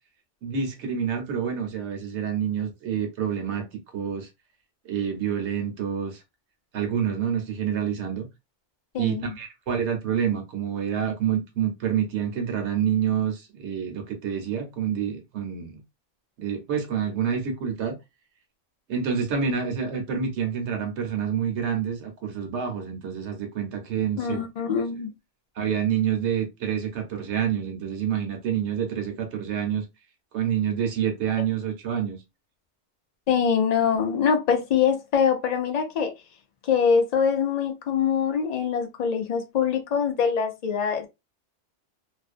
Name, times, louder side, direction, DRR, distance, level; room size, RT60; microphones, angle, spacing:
voice 1, 0.4-3.7 3.9-4.3 4.8-6.2 6.7-8.3 9.0-15.8 16.4-18.0 18.9-24.4 25.6-29.8 30.3-32.2, right 8 dB, 70° right, 1.0 m, -27 dB
voice 2, 8.9-9.3 24.2-25.1 33.3-36.1 36.6-41.1, left 7 dB, 70° left, 0.3 m, -24 dB
2.5 x 2.1 x 2.4 m
omnidirectional pair, 1.3 m